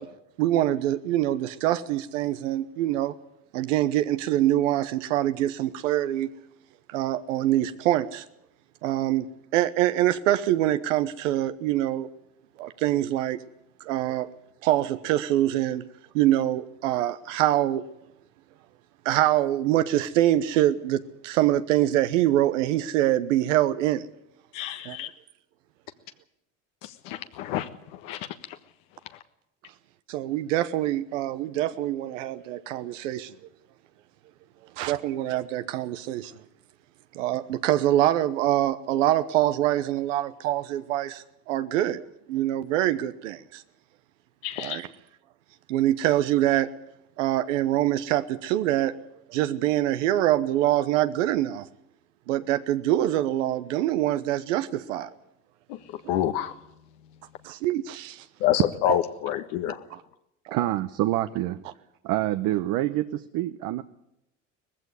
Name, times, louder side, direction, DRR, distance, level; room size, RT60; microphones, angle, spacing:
voice 1, 0.4-3.1 3.5-6.3 6.9-8.2 8.8-9.3 9.5-12.1 12.6-13.4 13.8-14.3 14.6-15.9 16.1-17.8 19.0-24.1 24.8-25.0 30.1-33.3 34.8-36.3 37.1-43.6 44.6-44.9 45.7-46.7 47.2-49.0 49.3-51.7 52.3-55.1 57.4-58.2 60.5-60.6, right 13 dB, 85° right, 1.1 m, -24 dB
voice 2, 24.5-25.1 26.8-28.6 44.4-44.8 55.7-56.5 58.4-59.8, left 12 dB, 70° left, 1.4 m, -28 dB
voice 3, 60.5-61.6 62.0-63.8, right 15 dB, 60° right, 1.0 m, -26 dB
18.5 x 15.5 x 9.6 m
supercardioid pair, 95°, 37 cm